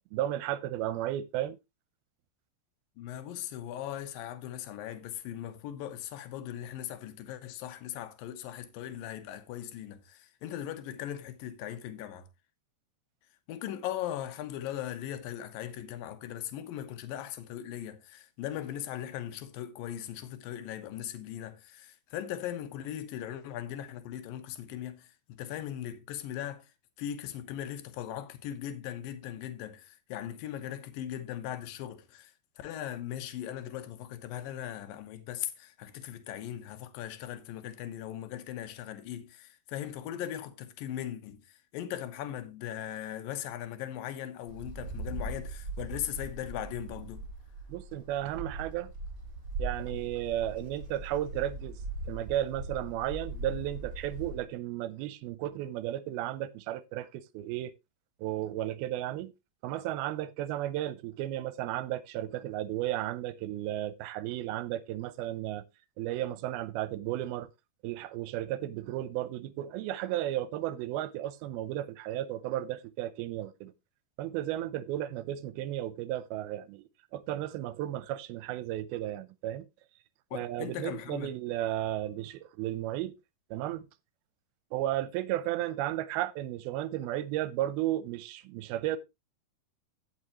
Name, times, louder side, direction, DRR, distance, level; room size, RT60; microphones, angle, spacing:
voice 1, 0.1-1.6 47.7-48.9 49.6-51.8 52.1-57.7 58.2-59.3 59.6-65.6 66.0-67.5 67.8-73.7 74.2-79.7 80.3-83.2 83.5-83.9 84.7-89.0, right 13 dB, 85° right, 2.6 m, -34 dB
voice 2, 3.0-12.3 13.5-26.7 27.0-47.2 80.3-81.3, left 11 dB, 75° left, 2.7 m, -39 dB
Wind, 44.5-54.5, right 2 dB, 30° right, 3.2 m, -40 dB
16.5 x 5.5 x 3.0 m
omnidirectional pair, 4.3 m